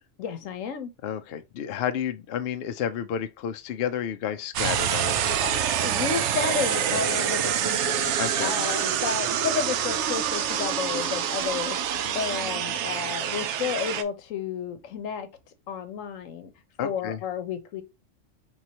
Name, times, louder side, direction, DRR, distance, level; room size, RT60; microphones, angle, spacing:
voice 1, 0.2-0.9 5.4-15.3 15.7-16.5 16.8-17.8, left 7 dB, 85° left, 1.1 m, -32 dB
voice 2, 1.0-5.6 6.9-7.0 8.2-8.5 12.0-12.2 16.8-17.2, left 9 dB, 65° left, 0.7 m, -31 dB
sound 1, 4.5-14.0, right 9 dB, 70° right, 0.8 m, -26 dB
4.6 x 3.8 x 2.8 m
omnidirectional pair, 1.3 m